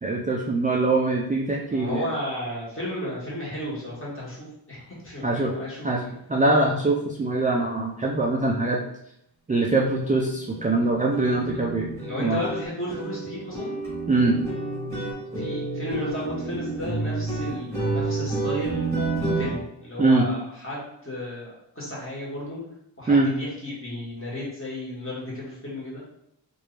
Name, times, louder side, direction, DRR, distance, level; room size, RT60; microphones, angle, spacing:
voice 1, 0.0-2.0 5.2-5.6 5.8-6.0 6.3-8.8 9.5-11.9 12.2-12.4 14.1-14.4 20.0-20.3 23.1-23.3, right 2 dB, 20° right, -1 dB, 0.3 m, -22 dB
voice 2, 1.7-6.1 12.0-13.8 15.4-18.9 19.2-22.6 23.0-26.0, left 1 dB, 30° left, -7 dB, 1.5 m, -33 dB
sound 1, 9.6-9.7 10.0-10.2 10.5-19.6, right 3 dB, 5° left, 1.5 m, -30 dB
3.1 x 2.5 x 3.2 m, 0.77 s
wide cardioid pair, 75°, 46 cm